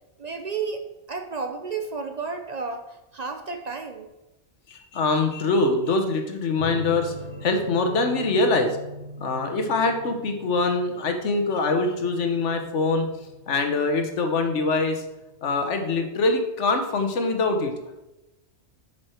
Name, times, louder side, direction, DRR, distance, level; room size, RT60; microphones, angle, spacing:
voice 1, 0.2-0.8 1.1-4.1, right 4 dB, 45° right, 5 dB, 0.6 m, -32 dB
voice 2, 4.7-7.1 7.4-8.7 9.2-13.1 13.5-15.0 15.4-17.7, left 3 dB, 90° left, 5 dB, 1.4 m, -23 dB
sound 1, 6.6-15.6, equal, 60° right, 1.6 m, -42 dB
7.9 x 6.0 x 4.4 m, 0.99 s
omnidirectional pair, 1.2 m